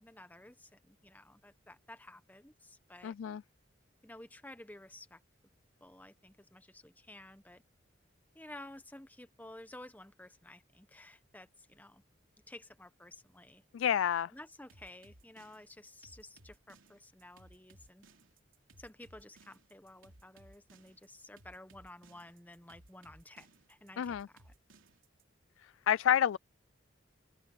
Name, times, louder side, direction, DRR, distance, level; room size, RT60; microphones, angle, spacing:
voice 1, 0.0-3.1 4.0-5.2 5.8-7.6 8.3-12.0 12.5-13.6 14.3-18.1 18.8-24.5, left 1 dB, 10° left, 1.2 m, -53 dB
voice 2, 3.0-3.4 13.7-14.3 24.0-24.3 25.9-26.4, left 9 dB, 80° left, 0.3 m, -29 dB
sound 1, 14.7-25.2, right 2 dB, 85° right, 3.2 m, -60 dB
open air
head